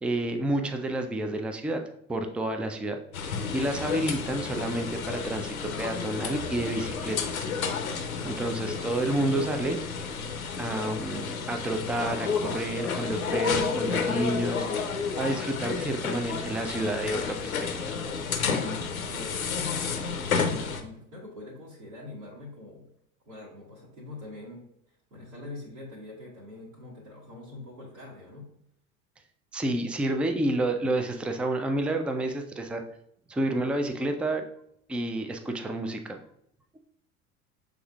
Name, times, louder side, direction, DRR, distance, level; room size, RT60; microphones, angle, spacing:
voice 1, 0.0-1.8 2.1-7.5 8.2-9.8 10.6-14.7 15.2-17.5 17.8-18.0 29.5-32.8 33.3-34.4 34.9-36.2, right 1 dB, 5° right, 6 dB, 0.3 m, -30 dB
sound 1, 3.1-20.8, left 5 dB, 90° left, 0.6 m, -31 dB
voice 2, 19.1-22.9 23.2-24.6 25.1-28.5, left 3 dB, 70° right, -6 dB, 1.7 m, -43 dB
6.2 x 3.6 x 2.3 m, 0.72 s
hypercardioid pair, 70°, 41 cm